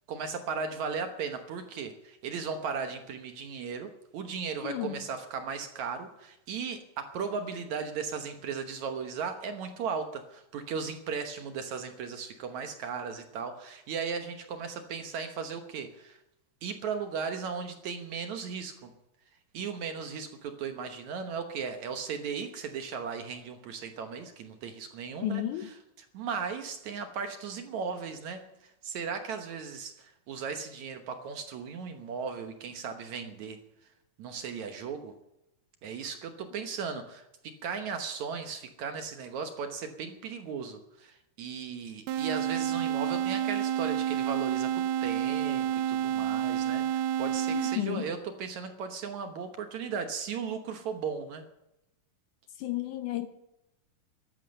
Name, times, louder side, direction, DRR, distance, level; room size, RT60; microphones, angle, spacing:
voice 1, 0.1-16.2 16.6-18.9 19.5-25.8 26.1-33.6 34.2-35.2 35.8-51.4, right 6 dB, 65° right, 2.0 m, -36 dB
voice 2, 4.6-5.0 25.2-25.7 47.5-48.1 52.6-53.3, left 13 dB, 75° left, 1.9 m, -32 dB
sound 1, 42.1-48.1, right 10 dB, 90° right, 2.7 m, -29 dB
14.0 x 11.5 x 6.7 m
omnidirectional pair, 4.4 m